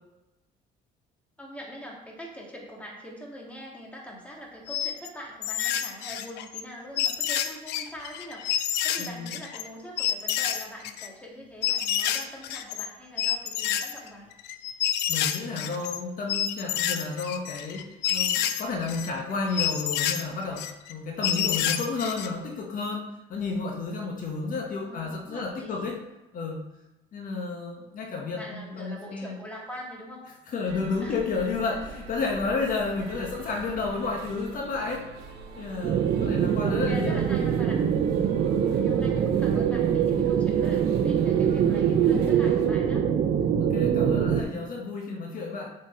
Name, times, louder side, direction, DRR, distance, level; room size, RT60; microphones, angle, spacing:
voice 1, 1.4-14.3 24.7-25.9 28.3-30.2 31.0-31.2 36.6-37.8 38.5-43.1, equal, 10° left, -2 dB, 1.9 m, -43 dB
sound 1, 4.7-5.1 5.4-6.6 7.0-9.7 10.0-11.1 11.6-12.9 13.2-16.0 16.3-19.1 19.5-20.9 21.2-22.3, left 10 dB, 85° left, 0.6 m, -28 dB
voice 2, 9.0-9.3 15.1-26.0 26.3-26.6 27.1-29.4 30.5-35.1 35.6-37.3 43.6-45.7, left 4 dB, 55° left, 0 dB, 1.3 m, -31 dB
sound 2, 30.6-42.7, right 5 dB, 75° right, 1.1 m, -43 dB
sound 3, 35.8-44.4, right 8 dB, 60° right, 0.7 m, -23 dB
7.5 x 4.6 x 4.4 m, 0.98 s
cardioid pair, 110°, 17 cm